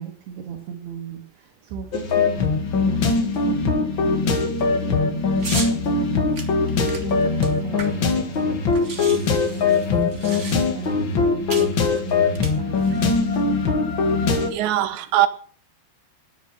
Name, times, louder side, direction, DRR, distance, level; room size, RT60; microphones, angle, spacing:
voice 1, 0.0-13.4, right 7 dB, 70° right, 4.0 m, -38 dB
sound 1, 1.9-14.5, left 4 dB, 50° left, 1.6 m, -21 dB
sound 2, 5.4-5.7 6.3-8.2 8.4-8.5 8.7-10.9 11.5-11.7 12.3-13.0, right 3 dB, 45° right, 0.9 m, -34 dB
voice 2, 14.5-15.3, right 14 dB, 85° right, 3.4 m, -20 dB
12.5 x 10.5 x 7.7 m
omnidirectional pair, 4.9 m